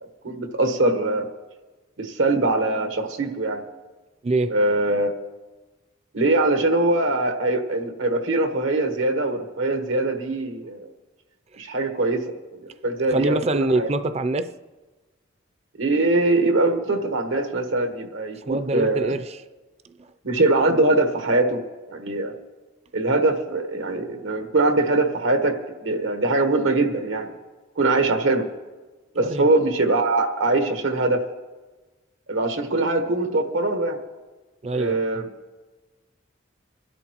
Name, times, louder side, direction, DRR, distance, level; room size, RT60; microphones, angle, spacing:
voice 1, 0.2-1.3 2.0-3.6 4.5-5.1 6.1-10.9 11.6-12.2 12.6-13.9 15.8-19.1 20.2-21.6 21.9-22.3 22.9-25.5 25.8-27.3 27.8-28.4 29.1-31.2 32.3-34.0 34.7-35.3, right 2 dB, 85° right, 6 dB, 1.3 m, -22 dB
voice 2, 13.1-14.5 18.5-19.4 29.2-29.5 34.6-35.2, right 2 dB, 35° right, 10 dB, 0.5 m, -25 dB
23.5 x 12.0 x 3.0 m, 1.2 s
head